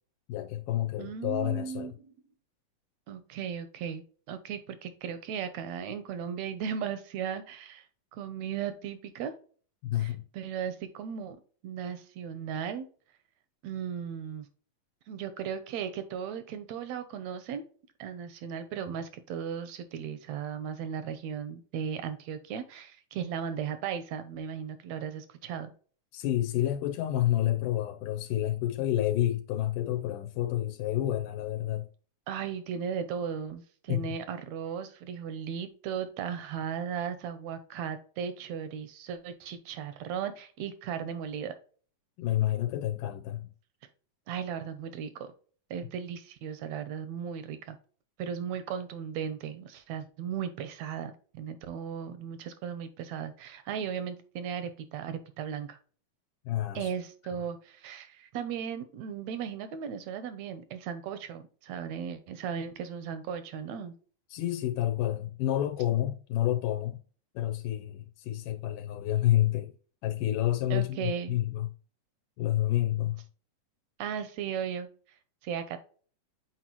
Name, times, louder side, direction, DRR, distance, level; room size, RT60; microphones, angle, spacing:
voice 1, 0.3-1.9 9.8-10.2 26.1-31.9 33.9-34.2 42.2-43.5 56.5-56.9 64.3-67.0 67.4-69.7 70.0-71.7 72.4-73.2, left 13 dB, 90° left, 2.3 m, -29 dB
voice 2, 1.0-1.9 3.1-7.9 8.1-9.3 10.0-11.4 11.6-12.9 13.6-14.5 15.1-17.6 18.0-25.7 32.3-41.5 44.3-45.3 45.7-47.8 48.2-55.8 56.7-63.9 70.7-71.4 74.0-74.9 75.4-75.8, right 8 dB, 80° right, 1.6 m, -36 dB
7.8 x 4.5 x 3.0 m
omnidirectional pair, 3.7 m